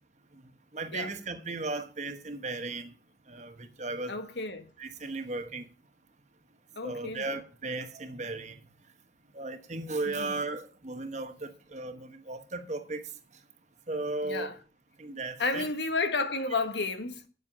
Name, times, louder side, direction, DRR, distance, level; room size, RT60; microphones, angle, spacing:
voice 1, 0.7-2.9 3.3-4.2 4.8-5.7 6.8-8.6 9.3-13.1 13.9-14.5 15.0-15.7, right 3 dB, 40° right, 1.1 m, -36 dB
voice 2, 4.1-4.7 6.8-7.3 10.1-10.3 14.2-14.6 15.4-17.3, left 3 dB, 75° left, 1.5 m, -32 dB
9.2 x 7.4 x 5.5 m
head